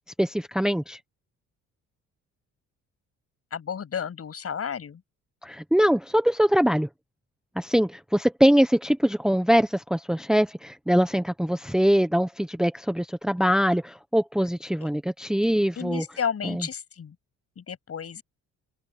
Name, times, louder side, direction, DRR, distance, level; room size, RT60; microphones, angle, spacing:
voice 1, 0.2-1.0 5.4-6.9 7.6-16.0 16.4-16.6, equal, ahead, 1.1 m, -23 dB
voice 2, 3.5-5.0 15.8-17.2 17.6-18.2, left 7 dB, 50° left, 7.7 m, -32 dB
cardioid pair, 90°, 30 cm